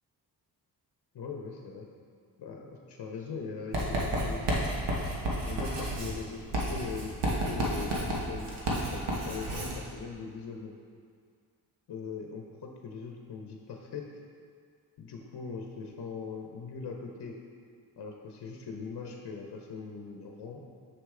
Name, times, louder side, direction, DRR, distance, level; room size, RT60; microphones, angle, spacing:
voice 1, 1.1-1.9 2.4-4.7 5.5-10.7 11.9-14.0 15.0-17.4 18.0-20.6, left 5 dB, 70° left, 1 dB, 0.8 m, -41 dB
Writing, 3.7-9.8, right 1 dB, 90° right, 1.3 m, -31 dB
6.7 x 6.4 x 3.7 m, 2.1 s
cardioid pair, 95°, 40 cm